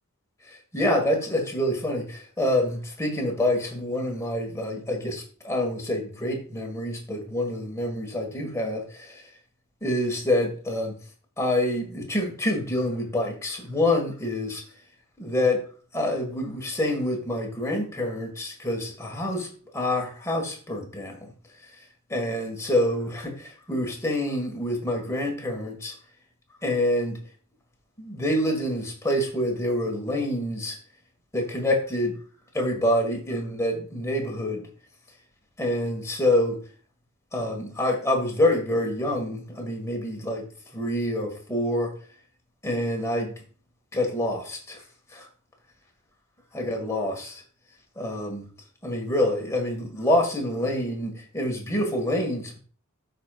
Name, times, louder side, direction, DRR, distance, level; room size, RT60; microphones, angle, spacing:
voice 1, 0.5-9.2 9.8-10.9 11.4-14.6 15.2-15.6 15.9-19.5 19.7-21.3 22.1-25.9 26.6-27.2 28.0-30.8 31.3-32.2 32.5-34.7 35.6-36.6 37.3-40.5 40.7-41.9 42.6-43.3 43.9-44.8 45.1-45.3 46.5-47.4 48.0-48.5 48.8-52.6, left 1 dB, 15° left, 1.8 m, -26 dB
13.0 x 5.2 x 2.5 m
head